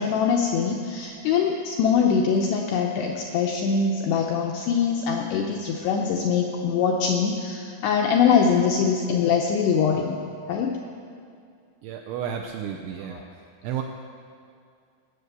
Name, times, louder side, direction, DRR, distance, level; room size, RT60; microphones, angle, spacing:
voice 1, 0.0-10.2 10.5-10.7 13.1-13.2, left 6 dB, 85° left, 1 dB, 2.3 m, -23 dB
voice 2, 11.8-13.2 13.6-13.8, right 9 dB, 85° right, 2 dB, 2.7 m, -32 dB
18.5 x 8.0 x 6.7 m, 2.3 s
omnidirectional pair, 5.8 m